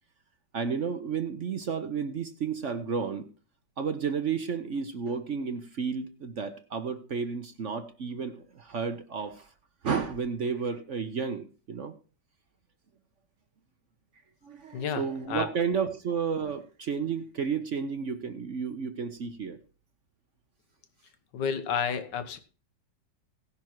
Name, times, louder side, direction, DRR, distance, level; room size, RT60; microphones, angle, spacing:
voice 1, 0.5-3.3 3.8-9.5 9.8-11.9 14.4-19.6, right 6 dB, 50° right, 9 dB, 1.0 m, -32 dB
voice 2, 14.7-15.5 21.3-22.4, left 7 dB, 70° left, 9 dB, 1.8 m, -31 dB
17.5 x 6.0 x 4.6 m, 0.37 s
omnidirectional pair, 2.0 m